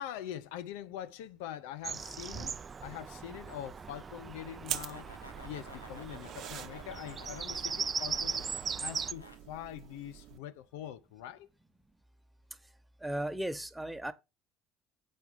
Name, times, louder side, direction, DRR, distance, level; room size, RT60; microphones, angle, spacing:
voice 1, 0.0-2.5 2.8-5.1 5.4-8.5 8.8-11.5, left 11 dB, 65° left, 0.6 m, -43 dB
Bird vocalization bird call bird song, 1.8-9.1, right 6 dB, 30° right, 0.6 m, -39 dB
sound 1, 4.4-9.4, equal, 90° left, 1.5 m, -52 dB
sound 2, 4.6-10.4, right 11 dB, 50° right, 0.9 m, -45 dB
voice 2, 13.0-14.1, right 1 dB, 5° right, 1.2 m, -35 dB
8.4 x 5.7 x 4.6 m
figure-of-eight pair, 60°, 0 cm